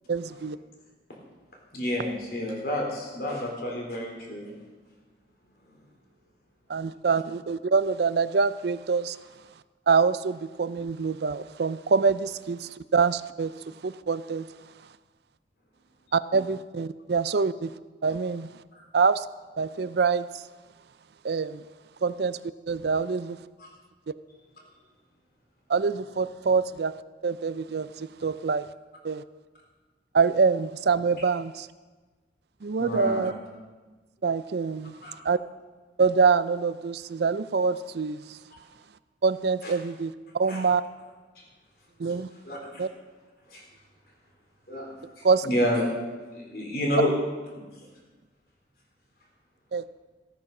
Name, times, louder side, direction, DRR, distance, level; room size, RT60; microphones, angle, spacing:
voice 1, 0.1-0.6 6.7-9.2 9.9-13.5 13.8-14.5 16.1-17.7 18.0-18.5 18.9-19.2 19.6-20.4 21.2-21.6 22.0-22.4 22.7-23.4 25.7-26.9 27.2-28.7 29.0-29.2 30.1-31.7 32.6-33.3 34.2-34.9 35.2-35.4 36.0-38.4 39.2-40.8 42.0-42.3 42.8-42.9 45.2-45.5 49.7-49.9, right 5 dB, 65° right, 15 dB, 0.5 m, -25 dB
voice 2, 1.7-4.5 18.8-18.9 23.6-23.7 32.8-33.3 35.0-35.2 38.5-38.6 39.6-39.7 40.5-40.6 42.4-42.8 43.5-43.6 44.7-45.9 46.3-47.1 47.5-47.6, left 1 dB, 55° left, -1 dB, 3.7 m, -29 dB
15.0 x 8.9 x 6.0 m, 1.3 s
head